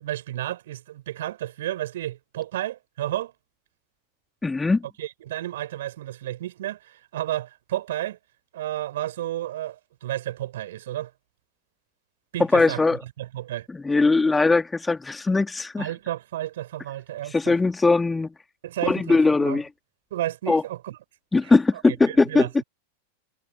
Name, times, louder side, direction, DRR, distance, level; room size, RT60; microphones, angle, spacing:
voice 1, 0.0-3.3 5.0-8.2 8.5-11.1 12.3-13.7 15.8-17.6 18.6-19.6 20.1-21.0 21.4-21.5 22.1-22.6, right 13 dB, 55° right, 6.0 m, -32 dB
voice 2, 4.4-4.8 12.5-13.0 13.7-15.9 17.3-18.3 18.9-19.7 20.5-20.6 21.3-22.5, left 3 dB, 10° left, 2.4 m, -20 dB
figure-of-eight pair, 90°, 0 cm